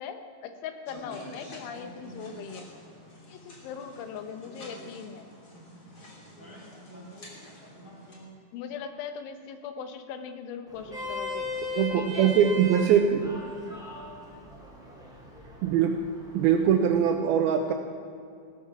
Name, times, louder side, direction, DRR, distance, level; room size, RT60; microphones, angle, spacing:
voice 1, 0.0-2.7 3.3-5.3 8.5-11.5 11.9-12.3, left 7 dB, 90° left, 7 dB, 3.5 m, -40 dB
sound 1, 0.9-8.2, equal, 30° left, 2.4 m, -47 dB
Vehicle horn car horn honking, 10.7-17.1, left 2 dB, ahead, 2.3 m, -38 dB
voice 2, 11.8-13.3 15.6-16.0 16.3-17.7, right 8 dB, 85° right, 5 dB, 2.2 m, -22 dB
17.5 x 13.5 x 6.0 m, 2.4 s
omnidirectional pair, 5.3 m